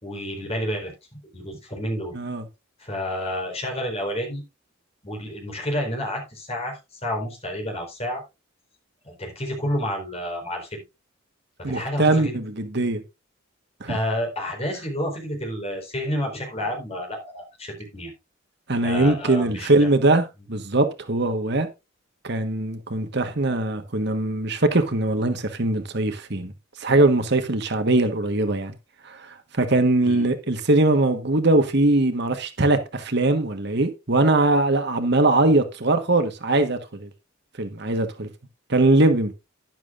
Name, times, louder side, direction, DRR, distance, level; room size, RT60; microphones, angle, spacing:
voice 1, 0.0-2.2 2.8-4.4 5.0-8.2 9.0-10.8 11.6-12.4 13.9-18.1 18.8-19.9 30.0-30.3, equal, 30° left, 4.5 m, -30 dB
voice 2, 11.6-13.0 13.8-14.0 18.7-21.7 22.2-26.5 26.8-28.7 29.0-37.1 37.6-38.3 38.7-39.3, right 2 dB, 50° right, 1.4 m, -21 dB
12.0 x 10.5 x 2.5 m
head